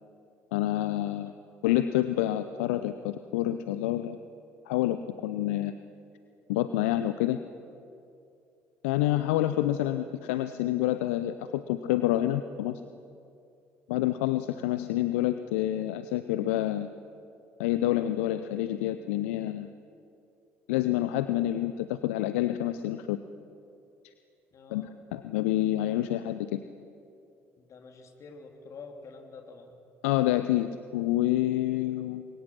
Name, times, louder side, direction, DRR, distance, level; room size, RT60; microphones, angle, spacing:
voice 1, 0.5-1.3 1.6-4.2 4.7-5.8 6.5-7.4 8.8-12.8 13.9-16.9 17.6-19.7 20.7-23.2 24.7-26.6 30.0-32.2, left 14 dB, 70° left, 11 dB, 0.7 m, -28 dB
voice 2, 24.5-24.9 27.6-29.7, left 4 dB, 45° left, 3 dB, 3.6 m, -47 dB
29.5 x 23.0 x 6.0 m, 2.5 s
figure-of-eight pair, 55°, 7 cm